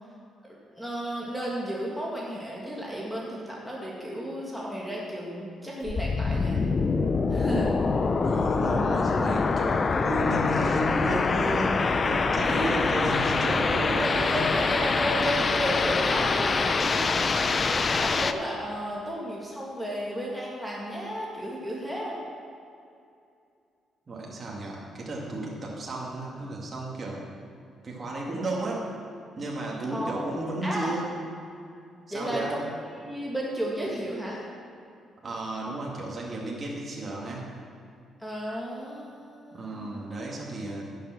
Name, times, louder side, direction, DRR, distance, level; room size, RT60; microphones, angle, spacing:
voice 1, 0.4-6.6 7.3-7.8 12.4-13.0 14.3-22.2 29.9-30.3 30.6-30.9 32.1-32.7 33.0-34.4 38.2-40.1, equal, ahead, -4 dB, 2.2 m, -33 dB
sound 1, 5.9-18.3, left 4 dB, 35° left, 0.5 m, -25 dB
voice 2, 8.2-11.8 12.0-14.4 24.1-27.3 27.8-28.9 29.4-31.1 32.1-32.6 35.2-37.5 39.5-40.8, right 1 dB, 35° right, -3 dB, 2.3 m, -33 dB
11.0 x 7.8 x 6.0 m, 2.5 s
cardioid pair, 90°, 0 cm